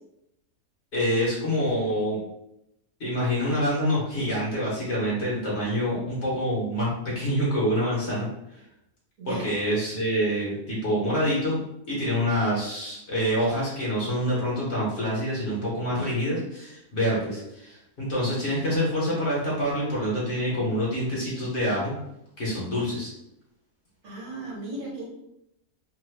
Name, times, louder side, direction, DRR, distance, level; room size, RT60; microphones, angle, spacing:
voice 1, 0.9-2.2 3.0-8.3 9.3-11.6 11.9-21.9 22.4-23.1, equal, 50° left, -6 dB, 1.1 m, -26 dB
voice 2, 9.2-9.6 24.0-25.0, right 2 dB, 60° right, -5 dB, 1.4 m, -36 dB
3.1 x 2.2 x 3.2 m, 0.82 s
omnidirectional pair, 1.6 m